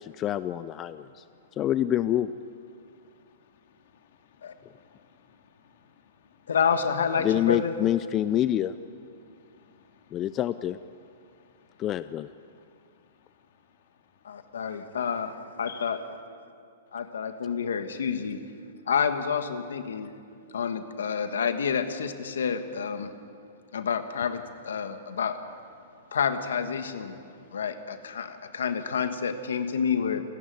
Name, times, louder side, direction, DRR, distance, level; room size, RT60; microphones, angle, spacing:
voice 1, 0.0-1.2 1.6-2.3 7.2-8.7 10.1-10.8 11.8-12.3, left 12 dB, 25° left, 13 dB, 0.5 m, -26 dB
voice 2, 1.0-1.6 2.7-6.5 9.1-10.4 11.0-12.1 12.4-15.0 20.3-20.6 25.8-26.2 27.1-27.7 28.2-28.6, left 7 dB, 60° left, 5 dB, 2.2 m, -63 dB
voice 3, 6.5-7.7 14.2-16.0 16.9-18.4 18.9-20.1 20.5-23.1 23.7-25.4 26.1-27.2 27.5-30.2, left 6 dB, 90° left, 9 dB, 1.5 m, -29 dB
29.0 x 10.5 x 9.4 m, 2.4 s
hypercardioid pair, 145°, 0 cm